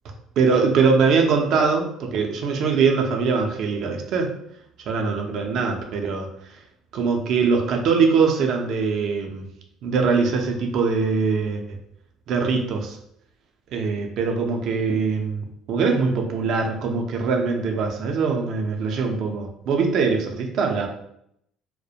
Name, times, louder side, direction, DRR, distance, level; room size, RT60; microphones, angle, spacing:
voice 1, 0.4-4.3 4.9-6.3 6.9-9.4 9.8-11.8 12.3-13.0 13.7-20.9, right 5 dB, 65° right, 3 dB, 0.4 m, -22 dB
2.3 x 2.1 x 2.7 m, 0.74 s
cardioid pair, 100°, 0 cm